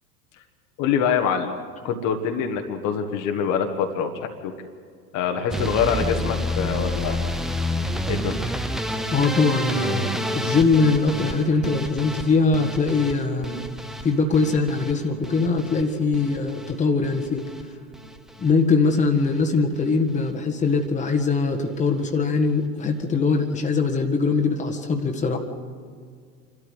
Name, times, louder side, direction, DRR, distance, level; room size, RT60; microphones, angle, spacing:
voice 1, 0.8-1.5 1.8-4.5 5.1-7.2 8.1-8.4, left 7 dB, 40° left, 5 dB, 1.7 m, -25 dB
sound 1, 5.5-17.6 17.9-18.5 18.8-19.4 19.7-20.0 20.3-20.4 20.6-20.7, equal, ahead, 0.5 m, -30 dB
voice 2, 9.1-13.6 14.0-17.5 18.4-25.4, left 4 dB, 15° left, 2 dB, 1.7 m, -22 dB
27.5 x 13.0 x 8.0 m, 2.1 s
figure-of-eight pair, 85°, 50 cm